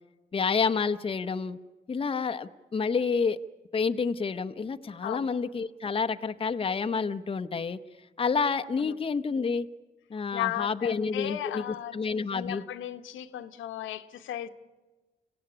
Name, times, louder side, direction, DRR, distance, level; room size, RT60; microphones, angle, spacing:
voice 1, 0.3-1.6 1.9-3.4 3.7-7.8 8.2-9.7 10.1-11.6 11.9-12.6, left 5 dB, 25° left, 0.8 m, -29 dB
voice 2, 10.3-11.9 12.3-14.5, left 12 dB, 80° left, 1.1 m, -35 dB
26.0 x 16.0 x 9.9 m
cardioid pair, 90°, 20 cm